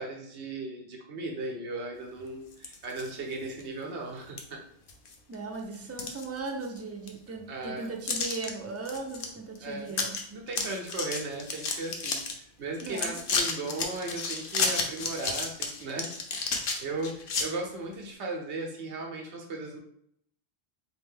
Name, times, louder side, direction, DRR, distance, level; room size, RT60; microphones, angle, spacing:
voice 1, 0.0-4.6 7.5-8.0 9.6-10.0 10.3-19.8, right 2 dB, 90° right, 0 dB, 1.2 m, -37 dB
sound 1, 2.5-3.1 3.6-3.7 4.4-4.5 4.9-5.3 5.7-6.8 7.1-7.2 8.1-8.5 8.9-9.3 9.6-9.7 9.9-10.2 10.5-12.3 12.8-17.4, left 4 dB, 60° left, 0.8 m, -31 dB
voice 2, 5.3-10.2 12.8-13.2, right 3 dB, 25° right, 2 dB, 0.3 m, -37 dB
3.5 x 3.1 x 3.6 m, 0.68 s
omnidirectional pair, 1.1 m